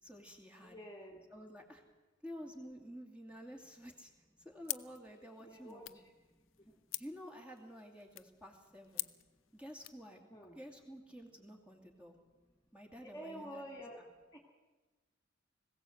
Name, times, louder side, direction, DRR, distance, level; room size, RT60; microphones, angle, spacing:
voice 1, 0.0-0.8 1.3-1.8 2.2-4.1 4.4-6.0 7.0-9.1 9.5-12.2 12.7-13.6 13.9-14.0, equal, 5° right, 1 dB, 2.6 m, -51 dB
voice 2, 0.6-1.2 5.4-5.9 10.3-10.6 13.0-14.0, equal, 20° left, -1 dB, 1.9 m, -48 dB
sound 1, 4.6-10.0, left 19 dB, 80° left, 0.6 m, -47 dB
20.5 x 16.5 x 8.0 m, 1.3 s
head